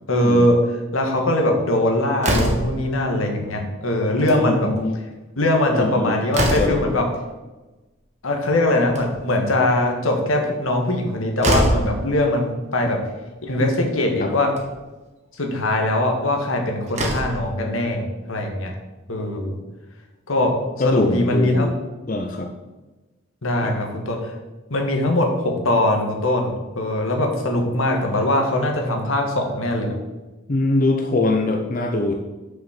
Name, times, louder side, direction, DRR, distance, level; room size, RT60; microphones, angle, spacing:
voice 1, 0.1-4.7 5.4-7.0 8.2-13.0 13.4-14.5 15.3-18.7 19.1-19.6 20.3-20.5 20.8-21.7 23.4-24.3 24.7-29.9, left 1 dB, 85° left, 2 dB, 1.6 m, -21 dB
Slam, 2.2-2.8 4.1-4.4 4.8-4.9 5.1-5.2 5.8-6.9 8.7-9.4 11.0-11.1 11.4-11.9 13.0-13.1 13.5-13.6 14.4-14.7 16.4-16.5 16.9-17.5, right 1 dB, 35° right, 1.5 m, -23 dB
voice 2, 4.4-5.0 5.7-6.2 6.6-6.7 14.2-14.3 20.8-21.8 22.1-22.5 23.6-23.8 30.5-32.1, left 2 dB, 40° left, 3 dB, 0.6 m, -22 dB
6.2 x 6.1 x 6.6 m, 1.2 s
head